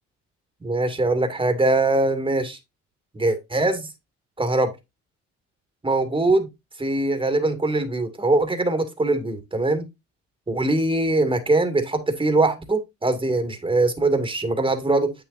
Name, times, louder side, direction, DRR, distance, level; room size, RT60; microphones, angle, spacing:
voice 1, 0.6-2.6 3.1-3.9 4.4-4.7 5.8-6.5 6.8-9.9 10.5-15.1, right 2 dB, 15° right, 2.2 m, -22 dB
8.5 x 6.9 x 2.5 m
cardioid pair, 90°, 30 cm